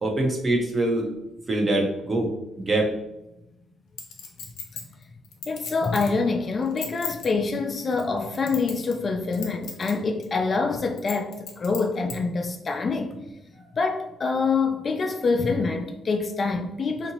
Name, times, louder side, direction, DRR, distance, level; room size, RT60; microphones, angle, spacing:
voice 1, 0.0-1.1 1.5-2.3 2.6-2.9, right 2 dB, 30° right, 0.7 m, -23 dB
Chink clink, 4.0-6.2 6.6-7.3 7.9-9.0 9.3-9.9 10.2-10.3 11.0-12.2 12.7-12.8, left 6 dB, 85° left, 0.6 m, -36 dB
voice 2, 5.5-13.2 13.7-17.1, left 4 dB, 40° left, 0.3 m, -26 dB
2.8 x 2.5 x 2.7 m
cardioid pair, 90°, 0 cm